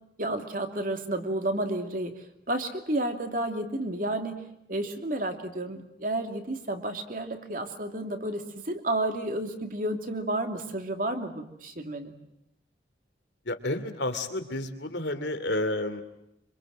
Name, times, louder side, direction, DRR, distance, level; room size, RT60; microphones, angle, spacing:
voice 1, 0.2-4.4 4.7-12.1, right 1 dB, 50° right, 6 dB, 2.7 m, -31 dB
voice 2, 13.5-16.0, left 2 dB, 75° left, 8 dB, 2.9 m, -30 dB
26.0 x 26.0 x 7.7 m, 0.83 s
head